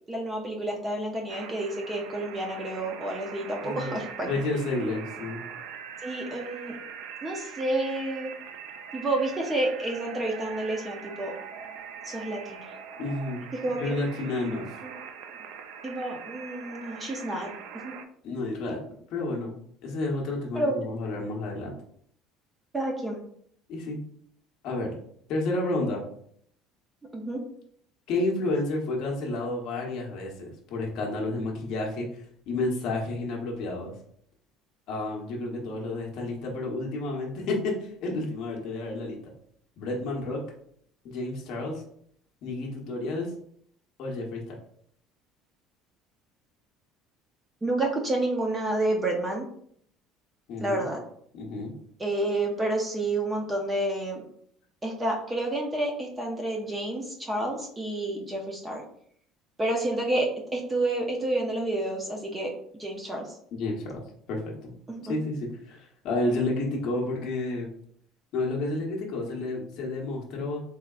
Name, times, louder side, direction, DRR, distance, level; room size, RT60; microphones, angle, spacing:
voice 1, 0.1-4.3 6.0-6.7 7.2-8.3 8.9-11.3 12.0-12.7 13.6-13.9 14.8-14.9 15.8-17.5 17.8-17.9 20.5-20.7 22.7-23.2 27.1-27.4 47.6-49.5 50.6-51.0 52.0-54.2 54.8-58.8 59.6-62.5 62.8-63.3 64.9-65.2, right 1 dB, 10° right, 1 dB, 0.5 m, -29 dB
sound 1, 1.3-18.0, right 7 dB, 85° right, 0.4 m, -42 dB
voice 2, 3.6-4.0 4.2-5.4 13.0-13.4 13.7-14.6 18.2-18.8 19.1-19.6 19.8-21.7 23.7-24.0 24.6-24.9 25.3-26.0 28.1-33.9 34.9-39.3 39.8-40.4 41.0-41.8 42.4-43.3 44.0-44.6 50.5-50.9 51.3-51.7 63.5-64.0 64.3-64.7 65.1-67.7 68.3-70.6, left 2 dB, 50° left, -1 dB, 0.8 m, -30 dB
3.5 x 3.5 x 2.3 m, 0.64 s
cardioid pair, 175°, 0 cm